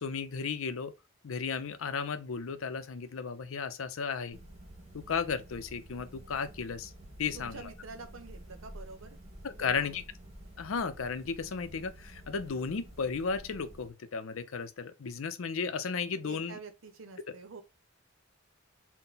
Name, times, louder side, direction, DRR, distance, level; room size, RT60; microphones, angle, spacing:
voice 1, 0.0-0.9 1.2-4.4 4.9-6.9 7.2-7.6 9.4-10.0 10.6-16.6, left 5 dB, 85° left, 0.5 m, -34 dB
sound 1, 4.3-13.9, right 1 dB, 30° right, 1.3 m, -50 dB
voice 2, 7.3-9.2 9.6-10.1 16.2-17.6, right 4 dB, 80° right, 0.7 m, -47 dB
3.9 x 2.1 x 3.8 m
head